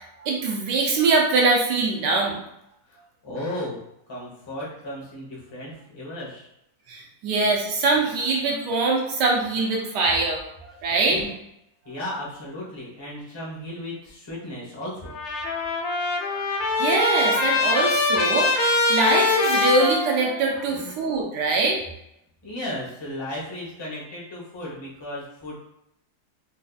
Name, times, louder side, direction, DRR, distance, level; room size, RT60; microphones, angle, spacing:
voice 1, 0.0-2.4 6.9-11.2 16.2-21.8, right 3 dB, 85° right, -1 dB, 1.3 m, -23 dB
voice 2, 2.9-3.8 4.1-6.5 11.1-11.3 11.8-15.1 20.7-20.9 22.4-25.5, left 1 dB, 20° left, -5 dB, 0.8 m, -35 dB
Trumpet, 15.1-20.7, left 3 dB, 65° left, 0.7 m, -23 dB
4.1 x 2.6 x 2.3 m, 0.81 s
omnidirectional pair, 1.8 m